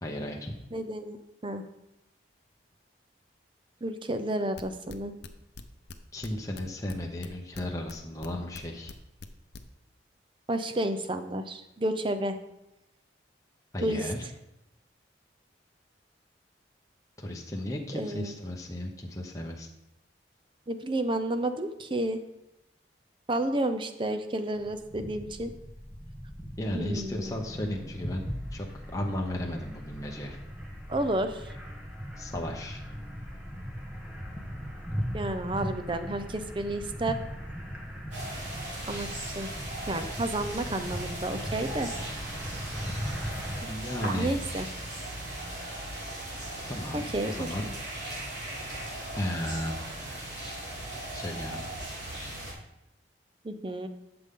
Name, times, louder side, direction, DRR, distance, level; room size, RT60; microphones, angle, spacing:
voice 1, 0.0-0.6 6.1-8.9 13.7-14.2 17.2-19.7 26.6-28.2 28.5-30.4 32.2-32.8 43.6-44.4 46.7-47.7 49.1-49.8 51.1-51.6, left 1 dB, 20° left, 0 dB, 0.9 m, -34 dB
voice 2, 0.7-1.2 1.4-1.6 3.8-5.1 10.5-12.4 13.8-14.1 18.0-18.3 20.7-22.2 23.3-25.5 26.7-27.3 30.9-31.5 35.1-37.2 38.9-39.1 39.4-39.5 39.9-41.9 44.1-44.7 46.9-47.5 53.4-53.9, right 1 dB, 30° right, 9 dB, 0.6 m, -31 dB
sound 1, 4.6-6.3 6.5-8.3 8.5-9.6, left 4 dB, 60° left, 0.7 m, -43 dB
sound 2, 24.5-43.6, equal, 5° right, 1.3 m, -39 dB
sound 3, 38.1-52.5, right 1 dB, 80° right, 3.7 m, -38 dB
12.0 x 6.9 x 3.8 m, 0.91 s
head